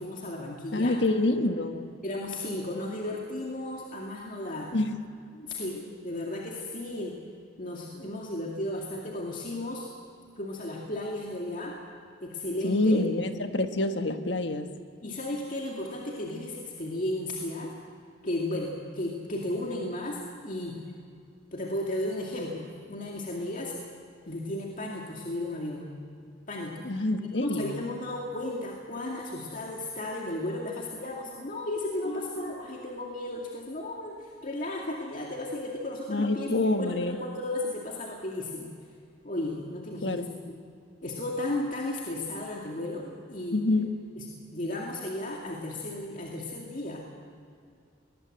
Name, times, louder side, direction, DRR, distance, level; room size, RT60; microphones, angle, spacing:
voice 1, 0.0-1.0 2.0-4.7 5.3-7.2 7.6-9.9 10.4-11.8 12.2-13.0 15.0-17.7 18.2-20.8 21.5-23.9 24.3-25.9 26.5-26.9 27.2-38.7 39.2-40.5 41.0-43.6 44.2-47.1, left 1 dB, 45° left, -1 dB, 2.3 m, -34 dB
voice 2, 0.7-1.9 4.7-5.0 12.6-14.7 26.8-27.8 32.1-32.3 36.1-37.2 40.0-40.3 43.5-43.9, left 2 dB, 70° left, 7 dB, 1.6 m, -27 dB
22.5 x 19.5 x 7.8 m, 2.4 s
head